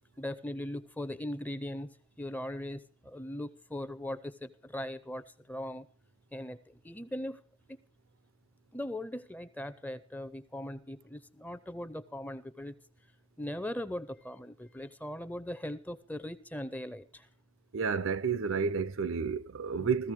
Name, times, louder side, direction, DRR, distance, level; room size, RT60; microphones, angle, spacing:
voice 1, 0.2-1.9 2.2-5.9 6.3-7.4 8.7-12.7 13.4-17.3 19.8-19.9, left 1 dB, 10° left, 0.6 m, -39 dB
voice 2, 17.7-20.1, right 5 dB, 75° right, 0.6 m, -31 dB
16.0 x 14.5 x 4.8 m
head